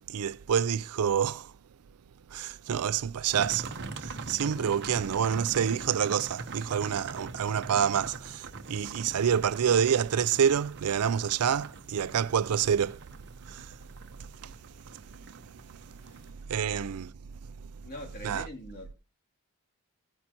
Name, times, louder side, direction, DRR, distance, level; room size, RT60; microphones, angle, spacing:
voice 1, 0.1-1.5 2.3-3.7 4.0-13.0 13.5-13.6 16.5-17.1 18.2-18.5, right 8 dB, 85° right, 0.4 m, -27 dB
sound 1, 3.3-16.3, right 3 dB, 55° right, 1.0 m, -43 dB
voice 2, 16.0-16.4 17.8-18.9, left 1 dB, 45° left, 2.7 m, -44 dB
17.0 x 9.6 x 2.9 m
head